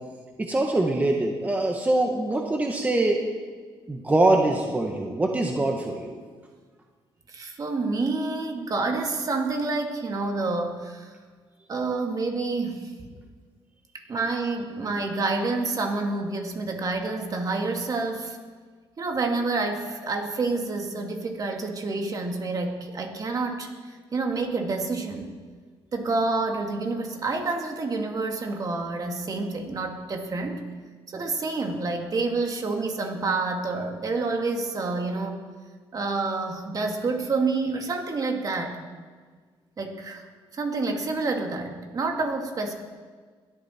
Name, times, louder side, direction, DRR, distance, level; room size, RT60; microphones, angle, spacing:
voice 1, 0.4-3.2 3.9-6.2, right 2 dB, 15° right, 1 dB, 1.5 m, -23 dB
voice 2, 7.3-11.1 11.7-12.9 13.9-18.4 19.0-25.4 25.9-30.6 31.1-35.4 35.9-38.8 39.8-40.2 40.5-42.7, right 3 dB, 40° right, 3 dB, 2.2 m, -28 dB
21.5 x 13.5 x 4.5 m, 1.5 s
cardioid pair, 120°, 10 cm